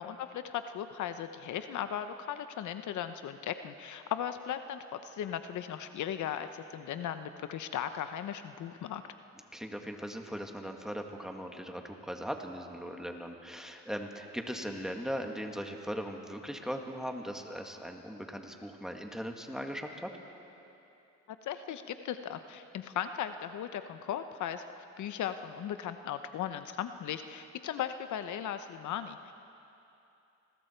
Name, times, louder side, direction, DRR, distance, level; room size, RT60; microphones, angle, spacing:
voice 1, 0.0-9.0 21.4-24.6 25.0-29.3, left 9 dB, 75° left, 10 dB, 0.9 m, -37 dB
voice 2, 9.5-20.1, equal, ahead, 3 dB, 2.0 m, -39 dB
29.5 x 20.5 x 4.5 m, 2.9 s
cardioid pair, 90°, 30 cm